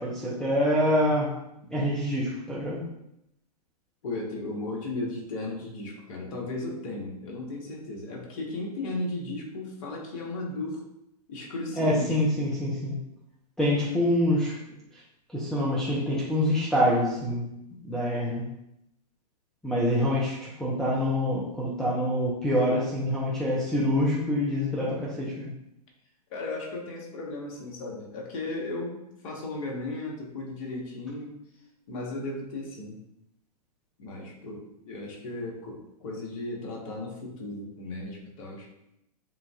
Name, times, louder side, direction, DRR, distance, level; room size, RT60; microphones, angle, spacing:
voice 1, 0.0-1.3 1.7-2.9 11.8-13.0 13.6-14.6 15.3-17.5 17.8-18.4 19.6-25.5, equal, ahead, -7 dB, 0.8 m, -26 dB
voice 2, 4.0-10.8 11.3-12.2 26.3-31.3 31.9-33.0 34.0-38.7, left 2 dB, 50° left, -1 dB, 1.4 m, -35 dB
7.4 x 2.7 x 2.4 m, 0.80 s
hypercardioid pair, 110°, 21 cm